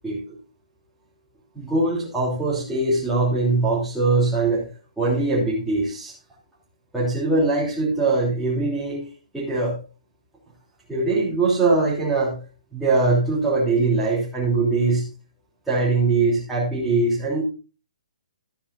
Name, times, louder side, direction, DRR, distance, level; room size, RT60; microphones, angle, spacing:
voice 1, 1.5-4.6 5.0-6.1 6.9-9.1 9.3-9.7 10.9-12.4 12.7-15.1 15.7-17.4, right 3 dB, 5° right, -8 dB, 3.1 m, -22 dB
12.5 x 10.0 x 2.5 m, 0.32 s
hypercardioid pair, 145°, 4 cm